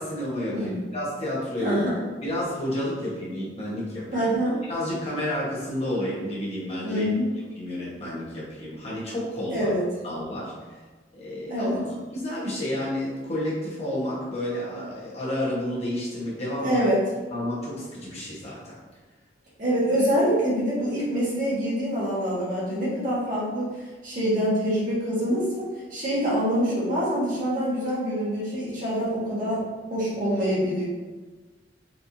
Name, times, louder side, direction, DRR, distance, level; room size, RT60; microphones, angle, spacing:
voice 1, 0.0-1.7 2.2-4.3 4.6-7.1 7.5-9.7 10.0-10.5 11.1-16.9 17.3-18.8, left 1 dB, 35° left, -6 dB, 1.3 m, -30 dB
voice 2, 1.6-2.0 4.1-4.6 6.8-7.3 9.5-9.8 11.5-11.8 16.6-17.0 19.6-23.7 24.0-29.6 29.9-30.8, equal, 50° right, -8 dB, 1.5 m, -25 dB
4.2 x 3.4 x 2.8 m, 1.3 s
head